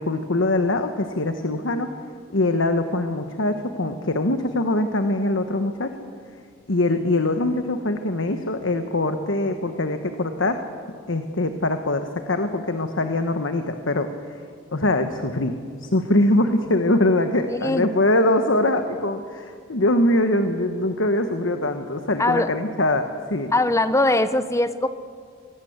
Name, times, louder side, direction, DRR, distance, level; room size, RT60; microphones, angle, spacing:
voice 1, 0.0-1.9 2.3-6.0 6.7-10.7 11.1-14.4 14.7-23.5, left 1 dB, 70° left, 7 dB, 1.2 m, -23 dB
voice 2, 17.5-17.8 22.2-22.5 23.5-24.9, left 2 dB, 15° left, 12 dB, 0.8 m, -21 dB
24.0 x 18.0 x 8.1 m, 2.1 s
head